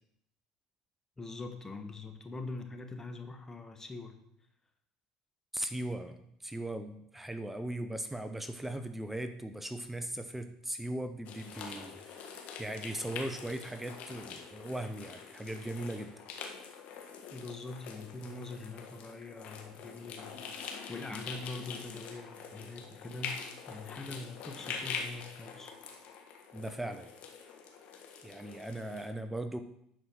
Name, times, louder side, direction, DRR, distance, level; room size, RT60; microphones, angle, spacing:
voice 1, 1.2-4.2 17.3-25.7, left 3 dB, 20° left, 6 dB, 1.4 m, -43 dB
voice 2, 5.5-16.2 26.5-27.1 28.2-29.6, right 1 dB, 10° right, 8 dB, 0.7 m, -39 dB
sound 1, 11.2-29.1, left 6 dB, 60° left, 1.6 m, -45 dB
11.0 x 4.9 x 6.2 m, 0.76 s
hypercardioid pair, 80°, 3 cm